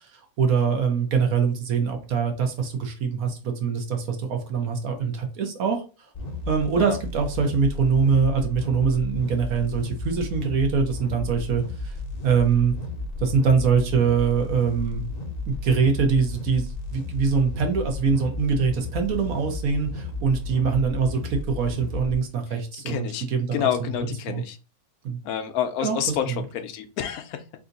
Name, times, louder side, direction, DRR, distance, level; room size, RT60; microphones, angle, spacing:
voice 1, 0.4-5.8 6.5-12.0 12.2-12.7 13.2-15.1 15.5-24.4 25.0-25.2 25.8-26.0, right 5 dB, 70° right, 1.2 m, -23 dB
sound 1, 6.1-22.1, left 2 dB, 40° left, 0.6 m, -33 dB
voice 2, 22.9-23.3 23.5-24.6 25.2-27.4, left 9 dB, 75° left, 1.0 m, -28 dB
3.4 x 2.7 x 3.8 m
omnidirectional pair, 1.6 m